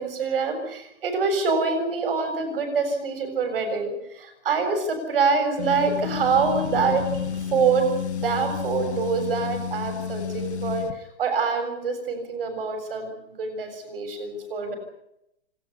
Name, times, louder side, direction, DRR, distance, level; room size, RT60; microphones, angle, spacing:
voice 1, 0.0-14.7, right 5 dB, 50° right, 6 dB, 7.2 m, -25 dB
sound 1, 5.6-10.9, left 8 dB, 60° left, 2.3 m, -31 dB
28.5 x 13.5 x 9.9 m, 0.80 s
hypercardioid pair, 175°, 37 cm